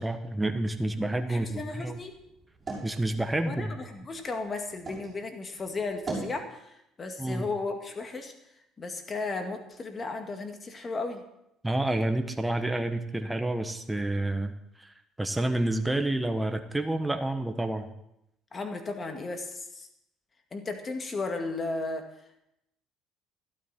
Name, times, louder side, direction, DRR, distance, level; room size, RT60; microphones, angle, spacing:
voice 1, 0.0-2.0 2.8-3.8 7.2-7.5 11.6-14.5 14.8-17.9, right 1 dB, 10° right, 7 dB, 1.0 m, -29 dB
voice 2, 1.3-2.1 3.4-8.3 8.8-11.2 18.5-19.9 20.5-22.1, left 3 dB, 30° left, 5 dB, 2.0 m, -35 dB
sound 1, 2.1-5.1 5.5-6.4, right 3 dB, 25° right, 5.8 m, -41 dB
12.5 x 12.0 x 4.3 m, 0.82 s
supercardioid pair, 95°, 0 cm